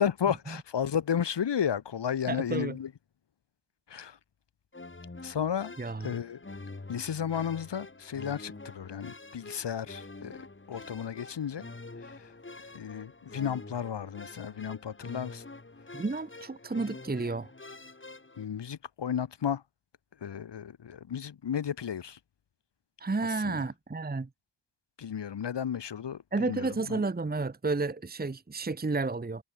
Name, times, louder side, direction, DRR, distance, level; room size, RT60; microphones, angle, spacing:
voice 1, 0.0-2.9 3.9-4.2 5.2-5.7 6.0-6.4 6.9-11.7 12.0-12.3 12.6-15.4 18.4-19.6 20.2-22.2 23.2-23.7 25.0-27.0, left 8 dB, 75° left, 1.4 m, -33 dB
voice 2, 2.3-2.8 5.8-6.1 15.9-17.5 23.0-24.3 26.3-29.4, right 3 dB, 20° right, 1.1 m, -31 dB
sound 1, 4.7-18.5, left 3 dB, 30° left, 3.3 m, -46 dB
cardioid pair, 55°, 43 cm